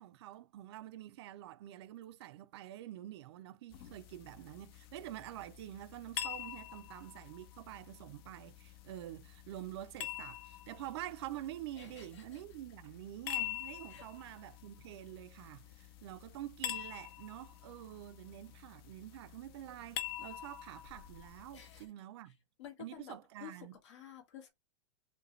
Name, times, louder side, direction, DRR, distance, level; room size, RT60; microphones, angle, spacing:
voice 1, 0.0-22.3 22.8-23.8, right 13 dB, 60° right, 0.5 m, -47 dB
sound 1, 3.7-21.9, left 13 dB, 50° left, 0.7 m, -46 dB
voice 2, 11.8-12.2 13.9-14.1 21.5-21.9 22.6-23.2 23.4-23.5 23.8-24.5, left 10 dB, 70° left, 1.7 m, -51 dB
5.0 x 2.3 x 3.1 m
supercardioid pair, 145°, 16 cm